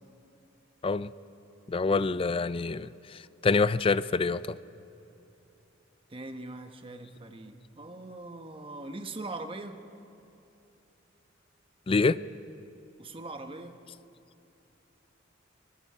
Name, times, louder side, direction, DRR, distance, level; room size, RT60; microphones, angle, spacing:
voice 1, 1.7-2.9 3.4-4.6 11.9-12.2, left 4 dB, 30° left, 17 dB, 0.4 m, -26 dB
voice 2, 6.1-9.8 13.0-13.8, right 2 dB, 30° right, 7 dB, 1.1 m, -41 dB
25.0 x 19.5 x 5.6 m, 2.9 s
head